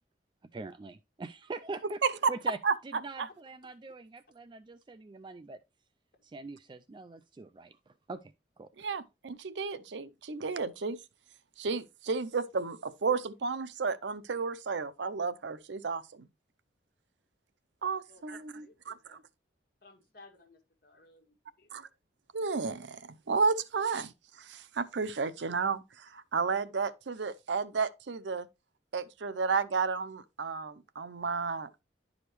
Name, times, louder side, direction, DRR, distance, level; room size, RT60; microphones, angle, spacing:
voice 1, 0.5-2.0 2.3-2.6 2.8-5.6 6.2-8.7, right 3 dB, 25° right, 0.3 m, -43 dB
voice 2, 2.0-2.3 2.6-2.7 8.8-11.0 11.6-16.0 17.8-19.2 21.7-21.9 22.3-23.0 23.3-24.1 24.5-25.8 26.1-28.5 28.9-31.8, right 5 dB, 80° right, 0.6 m, -32 dB
voice 3, 18.1-19.2 19.8-21.8, left 2 dB, 55° left, 1.8 m, -59 dB
11.0 x 5.0 x 3.0 m
head